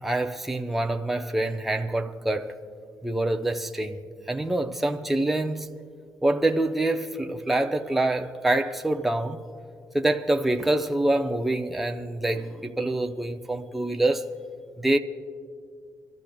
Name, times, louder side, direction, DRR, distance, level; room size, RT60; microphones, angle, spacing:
voice 1, 0.0-2.5 3.0-4.0 4.3-5.7 6.2-9.4 9.9-14.2 14.8-15.0, right 2 dB, 5° right, 0.6 m, -26 dB
26.5 x 13.0 x 2.3 m
cardioid pair, 115°, 7 cm